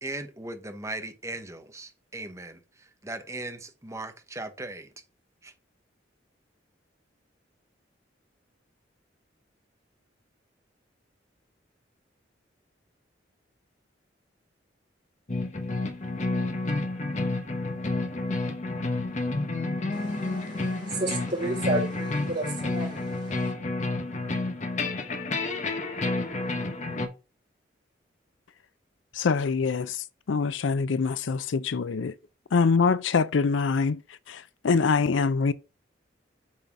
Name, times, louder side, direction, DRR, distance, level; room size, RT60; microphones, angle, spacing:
voice 1, 0.0-4.9 5.4-5.5, right 2 dB, 15° right, 0.9 m, -38 dB
sound 1, 15.3-27.1, left 2 dB, 40° left, 1.0 m, -30 dB
voice 2, 19.9-23.5, right 2 dB, 40° right, 3.2 m, -32 dB
voice 3, 29.1-32.1 32.5-34.0 34.3-35.5, left 5 dB, 85° left, 0.5 m, -24 dB
7.3 x 4.1 x 4.6 m
head